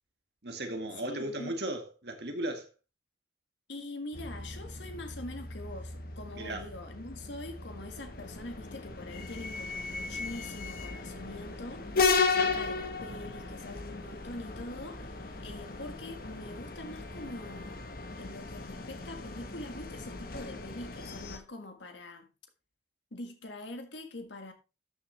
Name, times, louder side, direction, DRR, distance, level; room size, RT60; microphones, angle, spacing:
voice 1, 0.4-2.7 6.4-6.7, right 1 dB, 60° right, 1.8 m, -36 dB
voice 2, 1.0-1.6 3.7-17.8 18.2-22.3 23.1-24.5, left 2 dB, 75° left, 1.7 m, -44 dB
sound 1, 4.1-21.4, left 4 dB, 50° left, 1.2 m, -35 dB
12.5 x 6.6 x 3.3 m
head